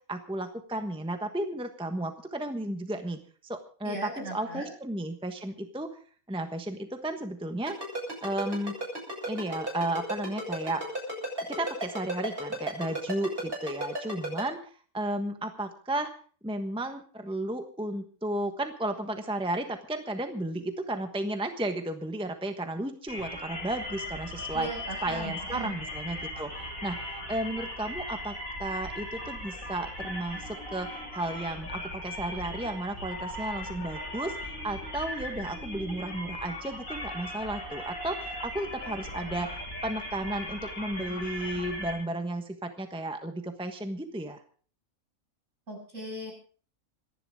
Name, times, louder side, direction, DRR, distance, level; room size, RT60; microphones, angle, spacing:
voice 1, 0.1-6.0 6.3-7.8 8.2-8.8 9.3-10.8 11.5-14.6 14.9-16.1 16.4-24.7 25.0-27.0 27.3-44.4, right 1 dB, 5° right, 6 dB, 1.2 m, -33 dB
voice 2, 3.8-4.7 24.5-25.8 45.7-46.3, right 1 dB, 60° right, 1 dB, 7.4 m, -38 dB
Ringtone, 7.7-14.4, right 1 dB, 40° right, 8.2 m, -33 dB
sound 1, 23.1-41.9, left 1 dB, 75° left, 8.7 m, -38 dB
27.0 x 11.0 x 3.7 m, 0.42 s
omnidirectional pair, 1.5 m